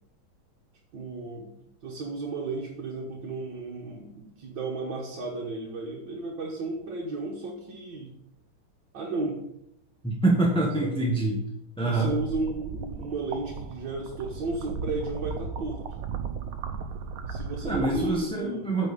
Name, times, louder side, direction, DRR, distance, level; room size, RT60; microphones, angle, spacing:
voice 1, 0.9-1.5 1.8-8.1 8.9-9.4 10.8-11.0 11.9-16.0 17.3-18.8, right 3 dB, 65° right, -2 dB, 2.0 m, -34 dB
voice 2, 10.0-11.4 11.8-12.1 17.6-18.9, right 2 dB, 5° left, -3 dB, 1.0 m, -25 dB
sound 1, 12.0-18.2, right 5 dB, 90° right, 1.7 m, -36 dB
8.8 x 5.2 x 6.9 m, 0.82 s
omnidirectional pair, 2.2 m